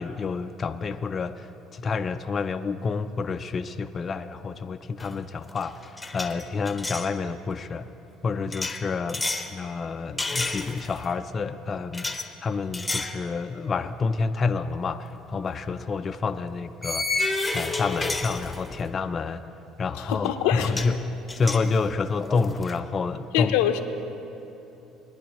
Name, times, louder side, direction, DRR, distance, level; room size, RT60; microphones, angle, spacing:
voice 1, 0.0-7.9 8.2-9.2 9.5-12.1 12.4-17.3 17.5-19.4 19.8-23.5, left 4 dB, 35° left, 8 dB, 0.4 m, -29 dB
sound 1, 5.0-5.2 5.5-7.1 8.5-9.5 10.2-11.1 11.9-12.3 12.7-13.2 13.6-13.8 15.3-15.5 16.8-18.9 20.2-20.3 20.6-21.0 21.3-22.8, left 3 dB, 15° left, 0.8 m, -31 dB
voice 2, 20.0-20.8 23.3-23.8, left 11 dB, 90° left, 7 dB, 0.7 m, -24 dB
21.0 x 10.5 x 3.0 m, 3.0 s
supercardioid pair, 100°, 0 cm